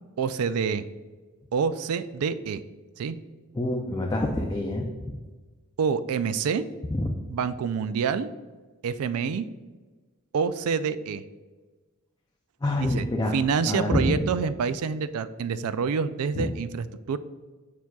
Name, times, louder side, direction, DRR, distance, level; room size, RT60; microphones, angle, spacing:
voice 1, 0.2-0.9 1.5-2.6 3.0-3.2 5.8-6.6 7.3-8.3 8.8-9.4 10.3-11.2 12.8-13.1 13.3-17.2, right 6 dB, 85° right, 13 dB, 0.4 m, -27 dB
voice 2, 3.5-5.2 7.0-7.1 12.6-13.3 13.7-14.2 16.4-16.5, left 1 dB, 20° left, 0 dB, 0.4 m, -26 dB
7.1 x 6.0 x 2.3 m, 1.3 s
head